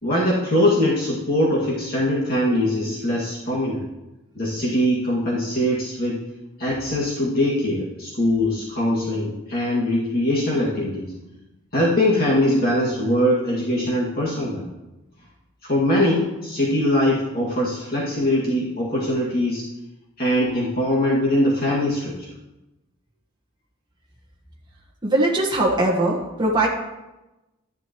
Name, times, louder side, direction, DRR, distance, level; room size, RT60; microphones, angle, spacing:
voice 1, 0.0-3.8 4.4-6.2 6.6-11.2 11.7-14.7 15.6-19.6 20.2-22.3, left 1 dB, 45° left, -6 dB, 2.1 m, -22 dB
voice 2, 25.0-26.7, right 2 dB, 20° right, -2 dB, 1.3 m, -20 dB
13.0 x 11.0 x 3.1 m, 1.0 s
head